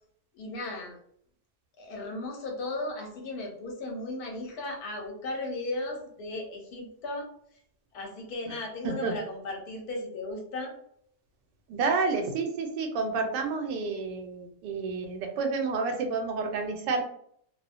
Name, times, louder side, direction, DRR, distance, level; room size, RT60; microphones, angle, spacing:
voice 1, 0.3-1.0 1.8-7.3 7.9-10.7, left 2 dB, 70° left, 1 dB, 1.1 m, -36 dB
voice 2, 11.7-17.0, right 4 dB, 90° right, 4 dB, 1.2 m, -29 dB
2.7 x 2.1 x 2.4 m, 0.65 s
omnidirectional pair, 1.8 m